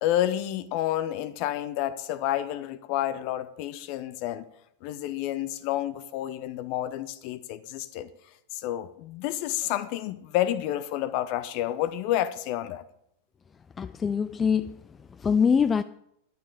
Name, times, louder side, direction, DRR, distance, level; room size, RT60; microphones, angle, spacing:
voice 1, 0.0-4.5 4.8-8.1 8.5-12.8, left 12 dB, 45° left, 0.7 m, -29 dB
voice 2, 13.8-15.8, left 6 dB, 20° left, 0.3 m, -24 dB
11.5 x 9.5 x 4.8 m
figure-of-eight pair, 90°, 0 cm